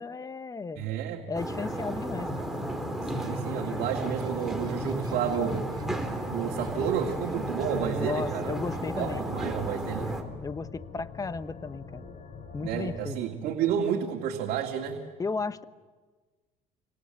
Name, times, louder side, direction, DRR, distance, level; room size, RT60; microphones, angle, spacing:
voice 1, 0.0-0.9 1.3-2.5 7.9-9.2 10.4-12.1 12.5-13.2 15.2-15.6, left 4 dB, 20° left, 14 dB, 0.9 m, -34 dB
voice 2, 0.8-1.3 3.0-5.7 6.3-8.5 9.0-10.1 12.6-15.0, right 8 dB, 80° right, 1 dB, 2.2 m, -31 dB
sound 1, 1.3-10.2, right 1 dB, ahead, 3.3 m, -33 dB
Laughter, 2.5-7.7, right 4 dB, 25° right, 5.1 m, -53 dB
sound 2, 5.8-13.1, left 5 dB, 45° left, 3.7 m, -44 dB
28.5 x 25.0 x 7.8 m, 1.4 s
cardioid pair, 115°, 16 cm